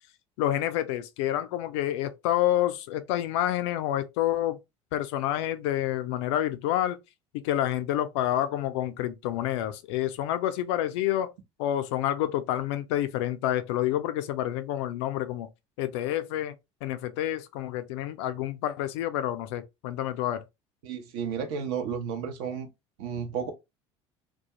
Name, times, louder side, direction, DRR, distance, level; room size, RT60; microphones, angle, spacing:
voice 1, 0.4-4.6 4.9-7.0 7.4-11.3 11.6-15.5 15.8-16.5 16.8-20.4, left 12 dB, 75° left, 0.4 m, -28 dB
voice 2, 20.8-22.7 23.0-23.5, right 7 dB, 75° right, 0.6 m, -32 dB
2.3 x 2.1 x 2.8 m
hypercardioid pair, 75°, 15 cm